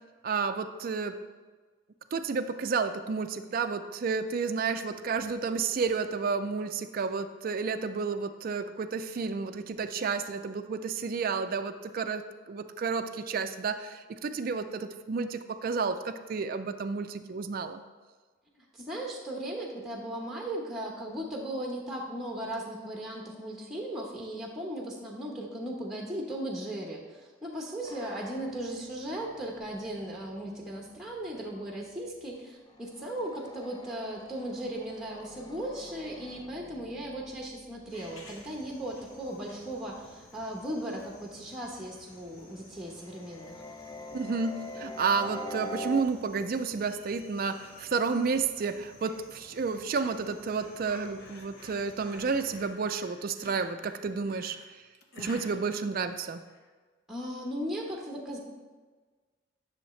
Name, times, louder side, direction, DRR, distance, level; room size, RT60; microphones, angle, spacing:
voice 1, 0.2-1.2 2.1-17.8 44.1-54.8 55.2-56.4, right 5 dB, 45° right, 8 dB, 0.4 m, -31 dB
voice 2, 18.7-43.6 57.1-58.4, right 1 dB, ahead, -1 dB, 0.9 m, -37 dB
sound 1, 27.8-32.3 32.6-42.2 42.7-46.0, equal, 20° left, 0.5 m, -46 dB
sound 2, 37.9-52.6, left 1 dB, 85° left, 1.7 m, -54 dB
sound 3, 51.2-56.7, left 2 dB, 55° left, 0.9 m, -51 dB
10.5 x 6.4 x 3.2 m, 1.4 s
head